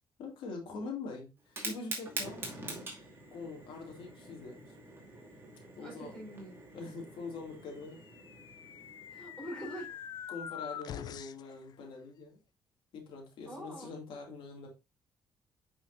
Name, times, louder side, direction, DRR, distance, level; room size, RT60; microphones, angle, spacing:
voice 1, 0.2-2.6 3.3-4.7 5.8-6.2 6.7-8.0 10.3-12.4 12.9-14.7, left 4 dB, 90° left, 2.5 m, -44 dB
Fire, 1.4-10.3, right 2 dB, 25° right, 2.4 m, -45 dB
voice 2, 5.8-6.6 9.1-10.0 13.4-13.9, right 1 dB, 10° left, 4.4 m, -44 dB
sound 1, 7.9-11.5, left 9 dB, 55° left, 0.4 m, -44 dB
8.5 x 5.7 x 2.6 m
cardioid pair, 155°, 8 cm